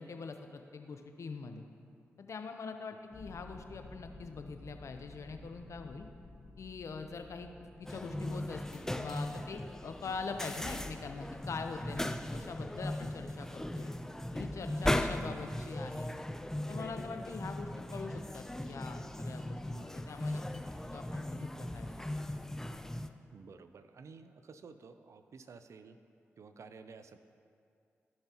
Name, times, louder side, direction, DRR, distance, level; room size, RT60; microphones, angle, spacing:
voice 1, 0.0-1.6 2.2-6.1 6.6-13.9 14.3-16.1 16.7-20.6 20.9-22.1, left 4 dB, 65° left, 6 dB, 0.7 m, -43 dB
sound 1, 3.1-16.2, left 2 dB, 50° left, 1.1 m, -56 dB
sound 2, 7.9-23.1, left 1 dB, 10° left, 0.5 m, -38 dB
voice 2, 23.3-26.0 26.4-27.2, right 5 dB, 65° right, 10 dB, 0.5 m, -52 dB
15.5 x 5.6 x 3.0 m, 2.4 s
supercardioid pair, 40°, 5 cm